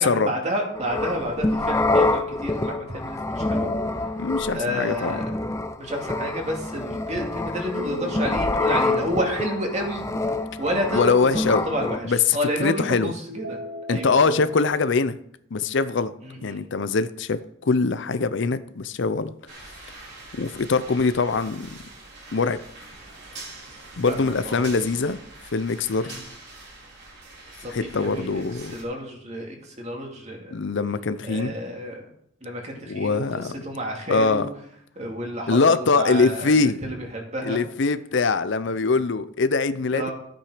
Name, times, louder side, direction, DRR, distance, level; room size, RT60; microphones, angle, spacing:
voice 1, 0.0-3.7 4.5-5.2 5.8-10.0 10.6-12.0 12.3-13.6 13.9-14.3 16.2-16.6 24.1-24.6 26.0-26.2 27.6-28.4 28.7-30.5 31.3-32.1 32.4-33.2 33.6-34.5 35.0-37.6 39.9-40.1, equal, 35° right, 2.5 m, -30 dB
sound 1, 0.7-12.0, left 2 dB, 15° left, 0.6 m, -26 dB
voice 2, 4.2-5.2 10.9-11.6 12.0-13.1 13.9-15.2 15.5-16.1 16.4-19.3 20.4-21.7 22.3-22.6 24.0-25.2 25.5-26.1 27.7-28.7 30.5-31.5 32.9-33.5 34.1-34.5 35.5-36.8 37.4-40.0, left 4 dB, 60° left, 0.6 m, -22 dB
sound 2, 5.7-5.8 7.8-10.9 13.3-14.7, left 1 dB, 85° right, 1.8 m, -40 dB
sound 3, 19.5-28.8, right 2 dB, 55° right, 4.7 m, -44 dB
13.0 x 8.9 x 5.0 m
head